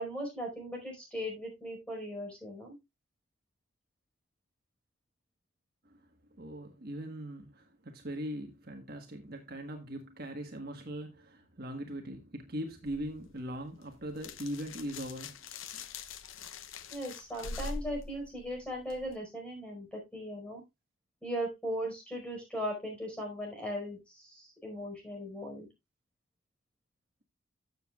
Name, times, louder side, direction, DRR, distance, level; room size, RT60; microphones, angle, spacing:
voice 1, 0.0-2.8 16.9-20.6 21.2-25.7, equal, 5° left, 4.9 m, -38 dB
voice 2, 6.4-15.4 15.7-15.8, equal, 50° right, 1.4 m, -40 dB
sound 1, 12.9-19.2, left 4 dB, 85° left, 0.8 m, -44 dB
13.5 x 7.3 x 2.4 m
head